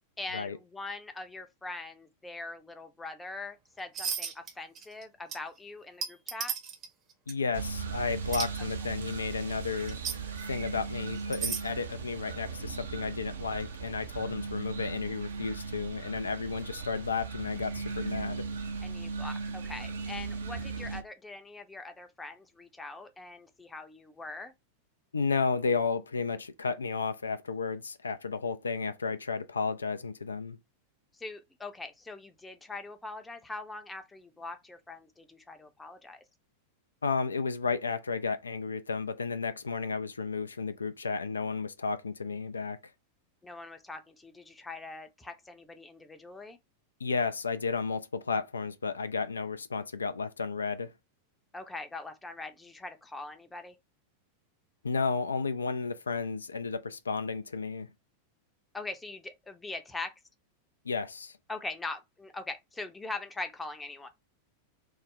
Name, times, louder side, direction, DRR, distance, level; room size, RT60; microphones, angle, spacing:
voice 1, 0.2-6.5 18.8-24.5 31.1-36.2 43.4-46.6 51.5-53.8 58.7-60.1 61.5-64.1, left 3 dB, 10° left, 0.6 m, -42 dB
sound 1, 3.9-4.5 4.8-5.0 5.3-5.4 6.0-6.9 7.3-7.4 8.3-8.5 9.9-10.2 11.2-11.7, right 7 dB, 30° right, 0.7 m, -33 dB
voice 2, 7.3-18.5 25.1-30.6 37.0-42.8 47.0-50.9 54.8-57.9 60.9-61.4, left 4 dB, 75° left, 0.3 m, -33 dB
sound 2, 7.5-21.0, right 5 dB, 65° right, 0.6 m, -38 dB
3.1 x 2.1 x 3.7 m
figure-of-eight pair, 90°, 0 cm